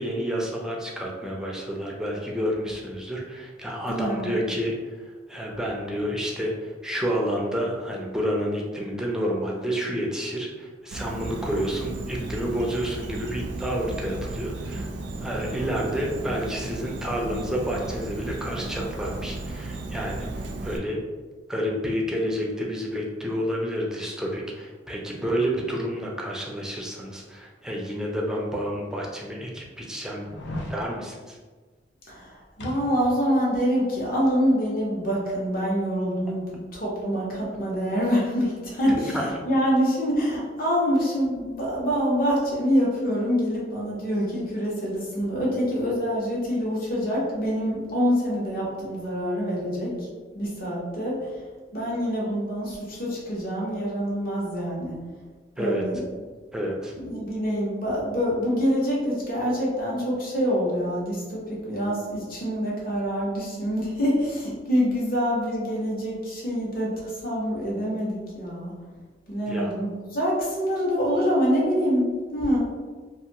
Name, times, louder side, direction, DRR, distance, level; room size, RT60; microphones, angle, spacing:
voice 1, 0.0-14.9 15.2-20.3 20.6-21.0 21.5-30.3 30.7-31.4 39.0-39.2 55.6-55.8 56.5-56.9 69.5-69.7, equal, 5° right, -2 dB, 0.4 m, -29 dB
voice 2, 3.9-4.3 32.1-50.1 50.3-51.4 51.7-55.0 55.6-56.0 57.0-68.7 69.3-72.6, equal, 55° left, -4 dB, 0.9 m, -26 dB
Insect, 10.9-20.8, right 2 dB, 70° right, 0.3 m, -34 dB
sound 1, 28.3-28.4 29.0-29.1 30.2-30.8 32.6-33.3 33.6-33.7, left 1 dB, 75° left, 0.4 m, -36 dB
2.5 x 2.4 x 2.8 m, 1.4 s
head